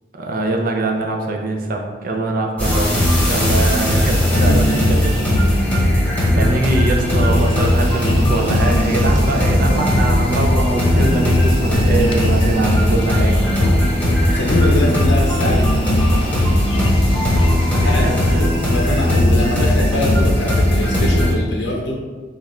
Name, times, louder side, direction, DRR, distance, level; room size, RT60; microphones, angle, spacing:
voice 1, 0.1-2.9 3.2-5.1 5.5-5.7 6.3-13.4 17.8-18.5 18.9-19.0, right 2 dB, 50° right, 1 dB, 0.5 m, -23 dB
sound 1, 2.6-21.3, left 1 dB, 10° left, 1.3 m, -17 dB
sound 2, 7.3-18.4, left 2 dB, 30° left, 0.4 m, -29 dB
Walk footsteps, 8.5-8.7 9.1-9.3 9.7-9.9 10.2-10.5 10.9-11.1 11.6-11.8 12.3-12.5 12.9-13.1 13.6-13.7 14.2-14.4 14.9-15.1 15.5-15.7 16.1-16.3 16.8-17.0 17.4-17.5, equal, 75° right, 1.3 m, -32 dB
voice 2, 14.0-15.7 17.8-22.0, left 2 dB, 75° left, -2 dB, 0.6 m, -23 dB
5.2 x 2.4 x 4.2 m, 1.4 s
head